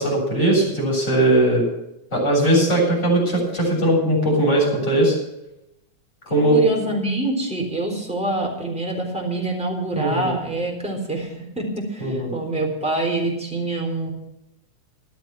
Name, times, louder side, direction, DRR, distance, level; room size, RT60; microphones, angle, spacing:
voice 1, 0.0-1.6 2.1-5.2 6.3-6.6 10.0-10.3 12.0-12.3, right 1 dB, 20° left, -4 dB, 8.0 m, -19 dB
voice 2, 6.5-14.1, right 2 dB, ahead, 0 dB, 3.6 m, -26 dB
14.5 x 12.0 x 5.9 m, 0.85 s
omnidirectional pair, 3.5 m